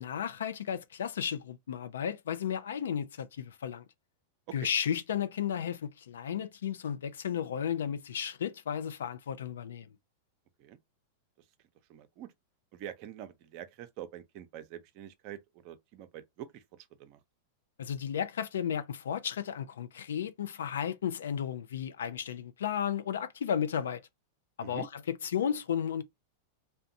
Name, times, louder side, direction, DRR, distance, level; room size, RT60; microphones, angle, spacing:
voice 1, 0.0-3.8 4.5-9.9 17.8-24.0 24.6-26.0, left 8 dB, 85° left, 0.3 m, -34 dB
voice 2, 11.9-12.3 12.7-17.2 24.6-24.9, right 11 dB, 50° right, 0.5 m, -46 dB
2.6 x 2.2 x 2.6 m
hypercardioid pair, 115°, 0 cm